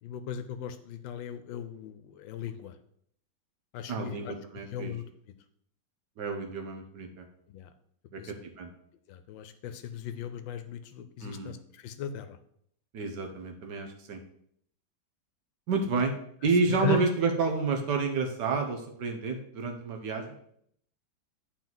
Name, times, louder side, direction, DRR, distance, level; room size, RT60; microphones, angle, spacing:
voice 1, 0.0-2.7 3.7-4.3 4.7-5.0 7.5-7.7 8.2-8.3 9.1-12.4 16.7-17.0, left 7 dB, 80° left, 10 dB, 1.4 m, -37 dB
voice 2, 3.9-4.9 6.2-7.2 8.1-8.7 11.2-11.5 12.9-14.2 15.7-16.1 16.4-20.3, right 4 dB, 65° right, 4 dB, 1.5 m, -30 dB
9.1 x 4.5 x 3.9 m, 0.68 s
omnidirectional pair, 2.1 m